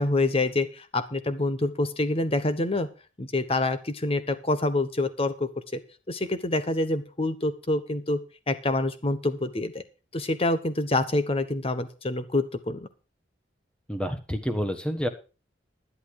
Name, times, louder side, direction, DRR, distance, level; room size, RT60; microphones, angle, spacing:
voice 1, 0.0-2.9 3.2-5.5 6.1-8.2 8.5-9.8 10.1-12.9, left 2 dB, 30° left, 12 dB, 1.1 m, -26 dB
voice 2, 13.9-15.1, equal, 5° left, 8 dB, 1.4 m, -28 dB
11.0 x 11.0 x 4.8 m, 0.33 s
head